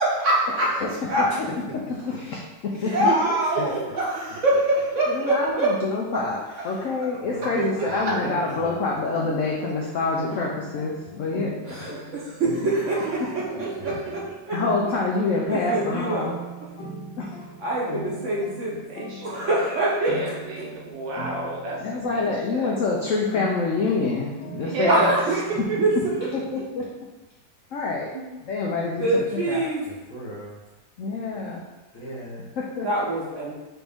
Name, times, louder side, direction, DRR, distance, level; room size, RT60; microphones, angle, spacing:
voice 1, 0.0-0.7 1.1-1.3 2.7-5.7 6.1-6.2 7.5-8.1 11.6-14.6 14.8-15.0 15.5-16.3 17.6-18.8 19.2-20.6 24.9-25.4 25.8-25.9 26.2-26.4 29.0-29.9 32.8-33.5, right 1 dB, 55° right, -5 dB, 1.0 m, -25 dB
voice 2, 0.6-3.1 5.1-12.1 13.2-13.3 13.8-14.1 14.5-16.3 17.2-17.3 21.8-25.1 25.6-26.9 27.7-28.1 28.4-29.7 31.0-31.6 32.6-32.9, left 3 dB, 70° left, -2 dB, 0.7 m, -27 dB
voice 3, 3.0-4.0 7.8-7.9 13.3-13.7 18.9-19.5 20.0-22.2 22.5-22.7 24.6-25.2 25.5-26.0 28.1-28.3, right 2 dB, 75° right, -2 dB, 1.6 m, -29 dB
voice 4, 7.2-8.9 13.8-14.0 29.9-30.6 31.9-32.5, left 1 dB, 55° left, -5 dB, 1.2 m, -38 dB
sound 1, 9.1-26.6, right 1 dB, 90° left, 1.5 m, -40 dB
6.0 x 2.6 x 3.5 m, 1.1 s
omnidirectional pair, 2.0 m